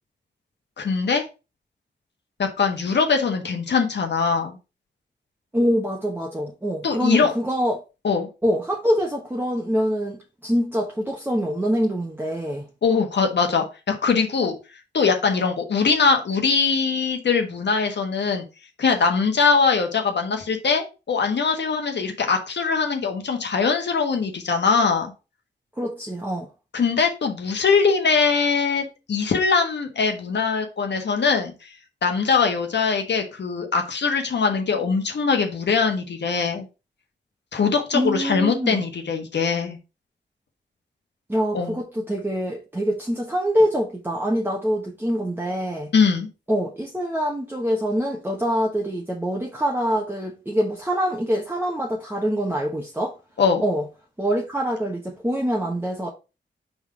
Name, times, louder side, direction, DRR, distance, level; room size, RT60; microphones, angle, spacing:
voice 1, 0.8-1.2 2.4-4.6 6.8-7.3 8.0-8.3 12.8-14.5 14.9-18.4 18.8-25.1 26.7-31.7 32.0-36.7 37.5-39.8 41.5-41.7 45.9-46.3 53.4-53.6, left 5 dB, 70° left, 1.3 m, -22 dB
voice 2, 5.5-7.8 8.4-12.6 25.8-26.5 37.9-38.8 41.3-45.9 46.5-53.1 53.6-53.9 54.2-56.1, equal, 10° right, 1.1 m, -25 dB
5.2 x 3.9 x 4.8 m
wide cardioid pair, 100°, 19 cm